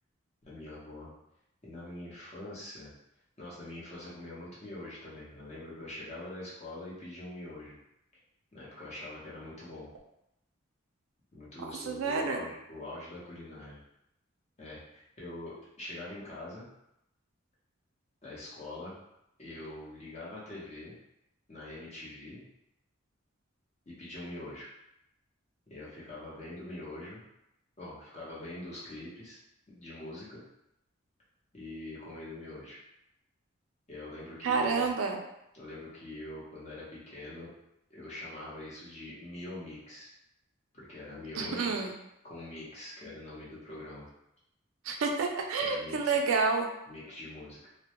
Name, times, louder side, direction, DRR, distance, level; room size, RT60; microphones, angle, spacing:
voice 1, 0.4-1.1 1.6-2.9 3.4-7.7 8.5-9.9 11.3-13.8 14.6-16.7 18.2-18.9 19.4-21.0 21.5-22.4 23.9-24.7 25.7-27.2 27.8-29.4 29.7-30.4 31.5-32.8 33.9-34.9 35.5-37.5 37.9-40.1 40.7-41.8 42.2-44.1 45.6-46.1 46.9-47.7, left 2 dB, 35° left, -7 dB, 0.7 m, -44 dB
voice 2, 11.6-12.4 34.4-35.2 41.4-41.9 44.8-46.7, right 4 dB, 85° right, 3 dB, 0.4 m, -29 dB
2.1 x 2.0 x 2.8 m, 0.83 s
head